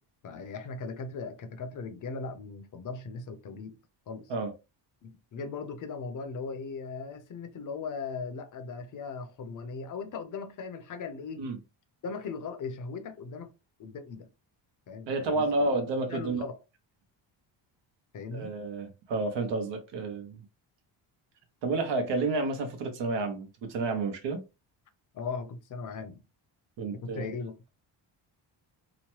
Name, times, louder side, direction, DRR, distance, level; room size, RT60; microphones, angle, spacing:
voice 1, 0.2-3.8 4.1-4.3 5.0-11.5 12.0-13.5 13.8-14.3 14.9-15.5 16.1-16.6 18.1-18.5 25.1-26.2 26.9-27.7, left 4 dB, 45° left, 0.6 m, -38 dB
voice 2, 15.1-16.4 18.3-20.4 21.6-24.4 26.8-27.3, right 3 dB, 70° right, 0.9 m, -30 dB
2.9 x 2.1 x 3.0 m
cardioid pair, 135°, 44 cm